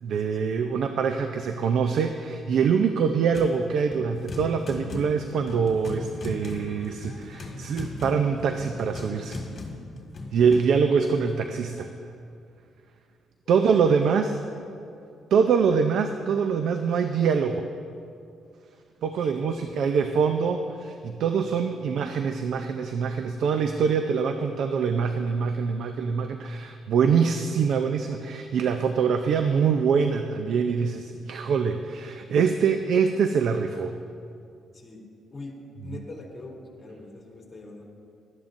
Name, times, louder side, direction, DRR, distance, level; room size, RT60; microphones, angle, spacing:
voice 1, 0.0-9.4 10.3-11.9 13.5-14.4 15.3-17.7 19.0-33.9, right 6 dB, 70° right, 7 dB, 0.5 m, -24 dB
sound 1, 3.3-3.6 3.9-10.7, left 2 dB, 50° left, 2.1 m, -37 dB
voice 2, 19.1-20.0 34.7-35.0 35.3-37.8, left 2 dB, 25° left, -3 dB, 3.0 m, -43 dB
17.5 x 12.5 x 2.6 m, 2.4 s
cardioid pair, 90°, 0 cm